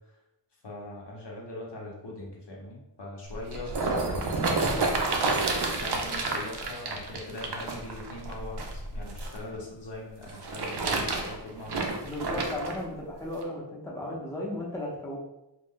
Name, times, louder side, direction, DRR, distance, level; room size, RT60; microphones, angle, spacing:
voice 1, 0.6-4.7 5.7-11.9, left 2 dB, 75° left, -3 dB, 0.8 m, -41 dB
sound 1, 3.3-9.4 10.2-12.8 13.4-13.5, right 3 dB, 70° right, 0.6 m, -30 dB
voice 2, 12.0-15.2, left 1 dB, 5° left, -3 dB, 0.7 m, -35 dB
2.5 x 2.2 x 3.6 m, 0.91 s
wide cardioid pair, 50°, 42 cm